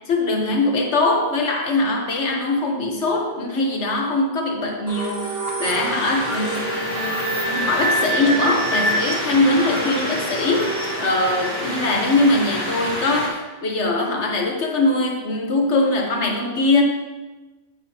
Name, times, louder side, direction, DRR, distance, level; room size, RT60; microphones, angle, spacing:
voice 1, 0.1-16.8, left 2 dB, 55° left, 1 dB, 1.4 m, -22 dB
sound 1, 4.9-13.5, right 1 dB, 45° right, 1.4 m, -28 dB
sound 2, 5.6-13.3, equal, 15° left, 1.6 m, -29 dB
9.1 x 8.8 x 2.9 m, 1.2 s
omnidirectional pair, 1.5 m